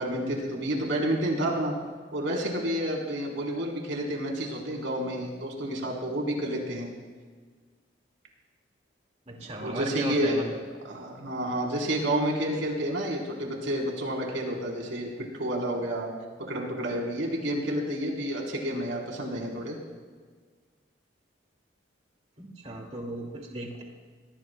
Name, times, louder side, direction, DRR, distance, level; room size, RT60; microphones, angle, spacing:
voice 1, 0.0-1.7 2.1-6.9 9.6-10.4 10.8-15.1 15.4-16.1 16.4-19.8, right 1 dB, 90° right, -1 dB, 3.8 m, -30 dB
voice 2, 9.3-10.6 22.4-23.8, right 1 dB, 35° right, 1 dB, 2.1 m, -36 dB
23.5 x 18.5 x 2.2 m, 1.5 s
head